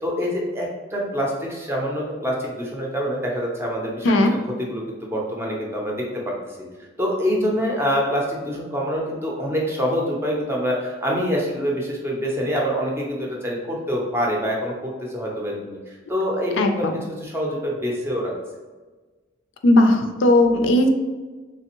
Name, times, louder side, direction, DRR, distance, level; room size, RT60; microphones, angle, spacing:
voice 1, 0.0-4.3 4.6-6.3 7.0-18.3, equal, 10° right, -2 dB, 0.5 m, -25 dB
voice 2, 16.6-16.9 19.6-20.9, left 1 dB, 70° left, 5 dB, 0.4 m, -17 dB
3.4 x 3.2 x 2.9 m, 1.3 s
head